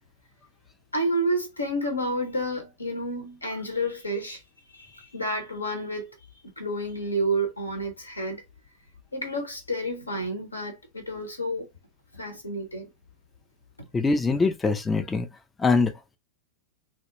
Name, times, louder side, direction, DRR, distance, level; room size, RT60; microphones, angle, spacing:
voice 1, 0.9-4.4 4.7-6.3 6.6-8.4 9.1-11.7 12.1-12.9, right 1 dB, 80° left, 0.8 m, -30 dB
voice 2, 13.9-15.3 15.6-15.9, left 3 dB, 15° left, 0.4 m, -23 dB
2.3 x 2.0 x 3.0 m
figure-of-eight pair, 90°, 0 cm